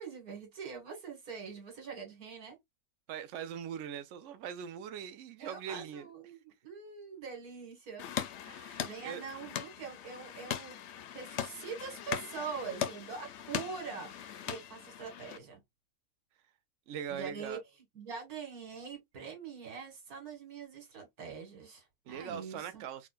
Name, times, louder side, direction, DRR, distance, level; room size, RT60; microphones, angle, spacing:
voice 1, 0.0-2.6 5.4-8.1 8.8-15.6 17.1-17.6 17.9-22.8, right 5 dB, 80° right, 2.0 m, -44 dB
voice 2, 3.1-6.1 8.4-9.2 16.9-17.6 22.1-23.1, right 8 dB, 65° right, 0.9 m, -41 dB
sound 1, 8.0-15.4, left 9 dB, 65° left, 0.8 m, -40 dB
4.5 x 2.1 x 2.2 m
omnidirectional pair, 1.5 m